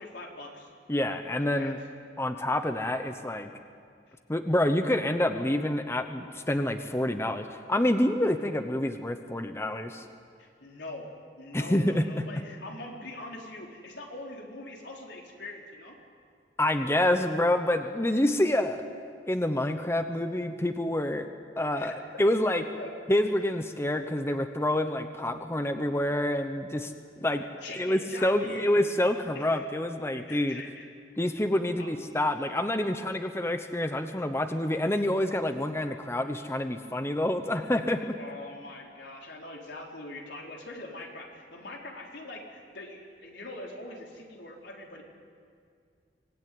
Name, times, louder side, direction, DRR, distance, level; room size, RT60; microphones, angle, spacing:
voice 1, 0.0-0.7 1.5-1.8 4.1-4.2 10.4-11.1 11.4-16.0 17.1-17.3 21.8-22.0 22.5-22.9 27.6-28.9 29.3-29.7 30.3-30.9 31.8-31.9 38.2-45.0, left 2 dB, 80° left, 0 dB, 4.1 m, -43 dB
voice 2, 0.9-1.8 2.2-3.5 4.3-10.0 11.5-12.2 16.6-18.8 19.3-21.3 21.6-22.6 23.1-26.9 27.2-27.4 27.8-30.6 31.2-38.2, left 1 dB, 15° left, 7 dB, 0.9 m, -27 dB
25.0 x 19.0 x 9.3 m, 2.2 s
head